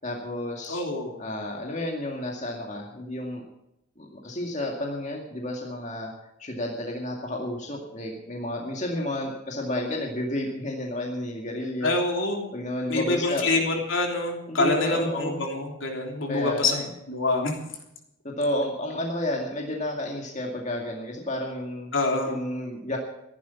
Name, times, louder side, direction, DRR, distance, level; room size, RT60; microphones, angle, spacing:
voice 1, 0.0-0.8 1.2-3.4 4.0-6.1 6.4-12.0 12.5-13.6 14.5-15.4 16.3-16.9 18.2-21.9 22.2-23.0, left 1 dB, 35° left, 0 dB, 2.2 m, -31 dB
voice 2, 0.7-1.2 11.8-12.5 12.9-17.6 21.9-22.4, left 2 dB, 65° left, 1 dB, 3.3 m, -26 dB
14.5 x 11.0 x 7.1 m, 0.85 s
head